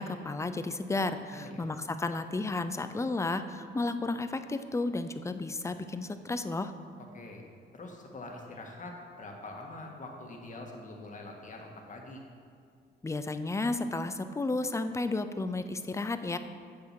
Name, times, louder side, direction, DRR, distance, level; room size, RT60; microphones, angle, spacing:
voice 1, 0.0-6.7 13.0-16.4, left 2 dB, 15° left, 10 dB, 0.5 m, -32 dB
voice 2, 1.3-1.7 7.1-7.4 7.7-12.2, left 2 dB, 40° left, 1 dB, 1.7 m, -44 dB
7.8 x 7.2 x 5.9 m, 2.3 s
cardioid pair, 90°, 20 cm